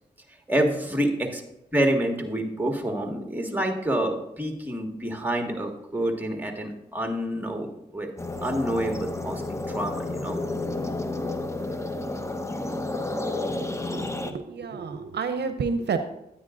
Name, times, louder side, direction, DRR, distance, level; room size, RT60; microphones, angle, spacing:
voice 1, 0.5-1.4 1.7-8.1 8.4-9.4 9.7-10.4, right 1 dB, 10° right, 3 dB, 1.7 m, -27 dB
sound 1, 8.2-14.3, left 2 dB, 15° left, 0.9 m, -31 dB
voice 2, 13.8-16.0, right 5 dB, 75° right, 8 dB, 0.6 m, -30 dB
9.9 x 9.4 x 2.5 m, 0.87 s
cardioid pair, 45°, 18 cm